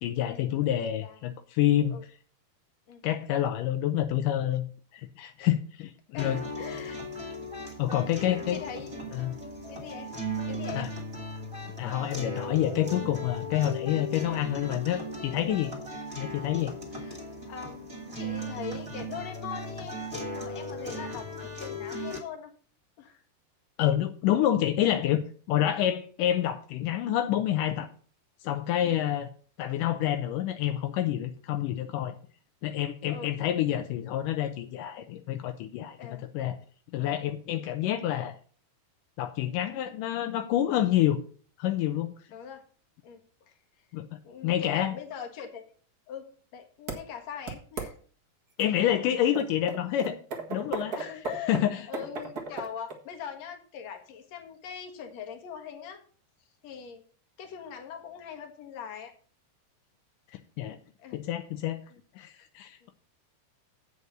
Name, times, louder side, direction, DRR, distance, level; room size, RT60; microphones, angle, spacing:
voice 1, 0.0-2.0 3.0-6.4 7.8-8.6 9.1-9.3 10.8-10.9 11.8-15.7 16.2-16.7 23.8-27.9 28.4-29.3 29.6-32.2 32.6-36.0 36.3-36.6 36.9-38.4 39.2-41.2 41.6-42.1 43.9-44.1 44.4-45.0 48.6-50.2 50.5-51.0 51.5-51.9 60.6-60.8 61.1-61.8 62.2-62.9, left 12 dB, 85° left, 7 dB, 1.8 m, -28 dB
voice 2, 0.8-1.2 1.9-2.0 2.9-3.0 6.1-7.0 8.2-9.0 9.7-10.1 10.5-10.9 16.9-20.0 20.3-22.5 23.0-23.2 28.8-29.0 33.1-33.3 36.0-36.2 39.4-39.5 42.3-42.6 43.0-43.2 43.5-43.6 44.2-45.6 46.1-46.3 46.5-47.9 50.9-56.0 56.6-57.0 57.4-59.1 61.0-61.2 61.9-62.0, left 7 dB, 55° left, 4 dB, 2.2 m, -41 dB
sound 1, 6.2-22.2, equal, 10° right, 1.6 m, -37 dB
sound 2, 46.9-47.0 47.5-47.9 48.6-48.7 49.3-53.0, right 4 dB, 85° right, 0.8 m, -35 dB
8.3 x 6.3 x 6.6 m, 0.42 s
omnidirectional pair, 4.7 m